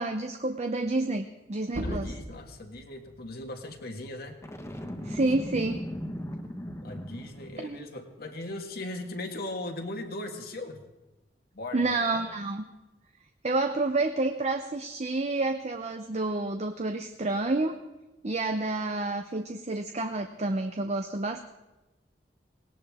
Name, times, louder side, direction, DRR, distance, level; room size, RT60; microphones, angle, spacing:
voice 1, 0.0-2.1 5.0-5.9 7.6-7.9 11.7-12.6 13.4-17.7 18.2-21.4, right 2 dB, 40° right, 7 dB, 0.7 m, -29 dB
sound 1, 1.7-6.9 7.3-9.1, equal, 90° right, 4.4 m, -42 dB
voice 2, 1.8-4.4 6.8-10.8 11.5-12.3, left 2 dB, 60° left, 4 dB, 1.6 m, -38 dB
Boom, 4.4-7.6, equal, 15° left, 1.4 m, -37 dB
18.5 x 18.0 x 3.6 m, 1.0 s
head